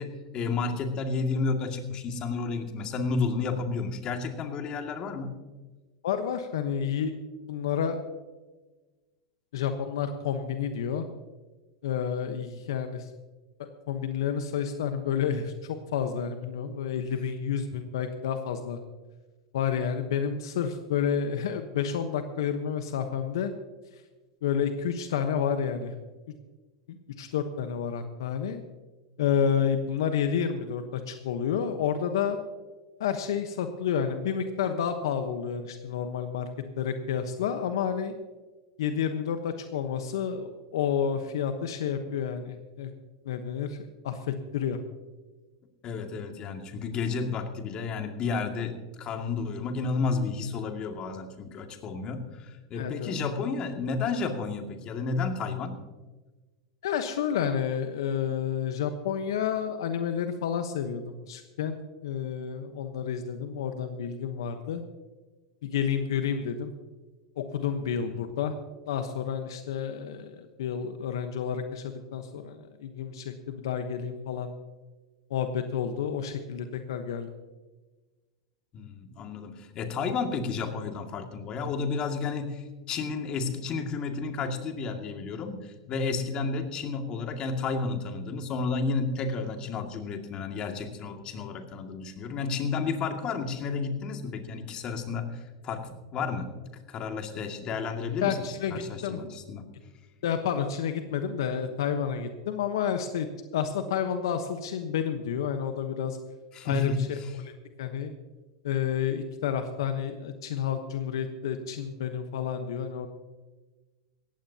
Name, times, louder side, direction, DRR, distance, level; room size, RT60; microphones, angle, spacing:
voice 1, 0.0-5.3 45.8-55.8 68.0-68.1 78.7-96.5 96.9-99.7 106.5-107.0, left 4 dB, 40° left, 4 dB, 2.2 m, -31 dB
voice 2, 6.0-7.1 7.4-8.0 9.5-11.0 11.8-13.1 13.6-18.8 19.5-23.5 23.9-24.0 24.4-25.9 26.9-28.6 29.2-32.4 33.0-36.5 36.8-38.1 38.8-42.9 43.2-43.8 44.0-44.8 52.7-53.2 56.8-61.8 62.0-64.8 65.6-66.7 67.4-68.5 68.9-74.5 75.3-77.3 98.2-99.2 100.2-103.3 103.5-106.2 106.6-106.9 107.4-107.5 107.8-108.1 108.6-113.1, left 8 dB, 75° left, 7 dB, 1.1 m, -30 dB
18.0 x 15.0 x 2.9 m, 1.2 s
hypercardioid pair, 110°, 2 cm